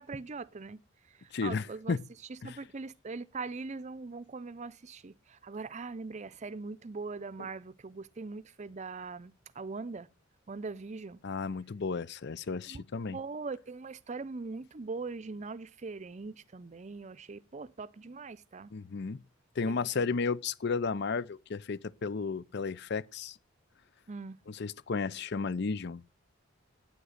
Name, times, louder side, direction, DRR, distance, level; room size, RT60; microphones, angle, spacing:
voice 1, 0.0-2.0 2.3-10.1 10.5-11.2 12.7-18.7 19.7-20.2 24.1-24.4, right 4 dB, 35° right, 0.5 m, -41 dB
voice 2, 1.3-2.0 2.4-2.6 11.2-13.2 18.7-19.2 19.6-23.4 24.5-26.0, left 4 dB, 60° left, 0.5 m, -33 dB
9.6 x 7.6 x 6.4 m
head